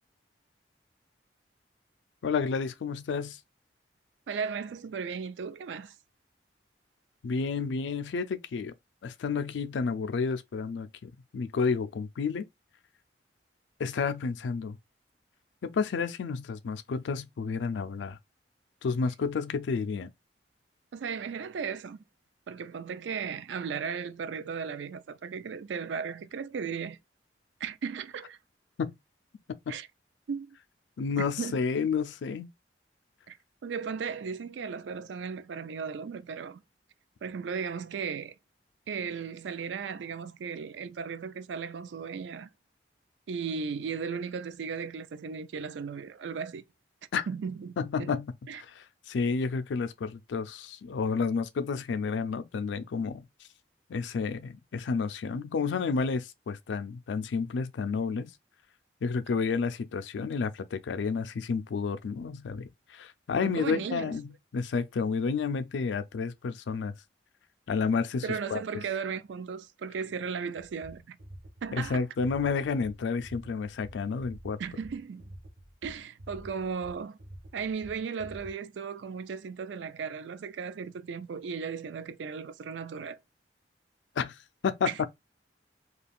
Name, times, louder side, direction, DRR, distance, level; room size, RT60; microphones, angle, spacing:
voice 1, 2.2-3.4 7.2-8.7 9.0-12.4 13.8-14.8 15.6-18.2 18.8-20.1 28.8-29.0 29.7-29.8 31.0-32.5 47.1-47.3 47.8-53.2 53.9-58.3 59.0-66.9 67.7-68.2 68.5-68.6 71.7-74.6 84.2-84.4 84.6-85.1, left 5 dB, 90° left, 0.4 m, -30 dB
voice 2, 4.3-5.9 20.9-22.0 22.5-27.0 27.6-28.4 29.7-29.9 30.3-30.6 31.4-31.6 33.3-33.4 33.6-36.6 37.2-38.3 38.9-42.5 43.3-46.6 47.3-48.2 48.5-48.6 63.4-64.2 68.2-71.2 71.6-72.0 74.6-75.3 75.8-77.2 77.5-83.2 84.9-85.0, right 6 dB, 80° right, 0.4 m, -36 dB
sound 1, 70.6-78.5, right 1 dB, 50° right, 0.8 m, -48 dB
2.3 x 2.3 x 3.4 m
head